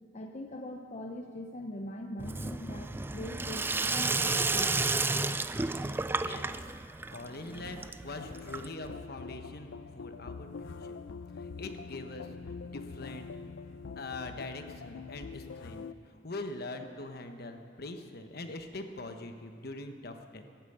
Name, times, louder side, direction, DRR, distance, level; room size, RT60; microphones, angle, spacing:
voice 1, 0.1-4.9, left 1 dB, 40° left, 3 dB, 0.7 m, -42 dB
Sink (filling or washing), 2.2-9.0, right 3 dB, 10° right, 0.3 m, -32 dB
voice 2, 6.1-6.7 7.1-11.0 11.3-13.3 14.0-20.4, left 2 dB, 55° left, 6 dB, 1.1 m, -43 dB
sound 1, 8.2-15.9, left 4 dB, 85° left, 0.5 m, -44 dB
14.5 x 9.1 x 8.6 m, 2.5 s
head